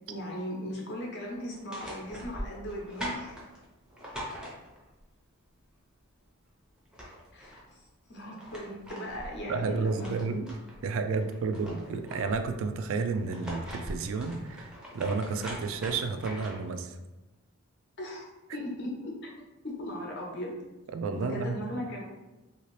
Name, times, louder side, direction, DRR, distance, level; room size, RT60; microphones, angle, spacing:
voice 1, 0.1-3.4 7.3-7.6 8.1-10.1 18.0-18.3 18.5-19.1 19.6-20.5 21.2-22.0, equal, 50° left, -2 dB, 0.8 m, -37 dB
sound 1, 1.5-5.0 6.4-6.5 6.8-7.6 8.1-10.8 11.2-12.5 13.1-16.7, equal, 5° right, 0.6 m, -42 dB
voice 2, 9.5-17.0 20.9-21.6, right 4 dB, 65° right, 8 dB, 0.3 m, -31 dB
2.8 x 2.8 x 3.1 m, 1.0 s
head